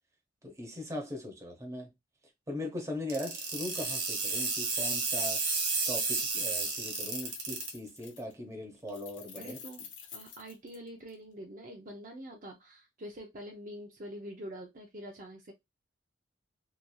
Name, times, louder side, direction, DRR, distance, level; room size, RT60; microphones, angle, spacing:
voice 1, 0.4-1.9 2.5-5.5 5.9-9.6, left 1 dB, 15° right, 0.8 m, -39 dB
sound 1, 3.1-7.7, right 4 dB, 75° right, 1.0 m, -31 dB
Keys jangling, 4.6-4.7 4.9-5.6 5.9-8.3 8.9-11.1, left 6 dB, 90° left, 0.8 m, -49 dB
voice 2, 9.4-15.5, equal, 45° right, 0.6 m, -45 dB
2.9 x 2.6 x 2.3 m
head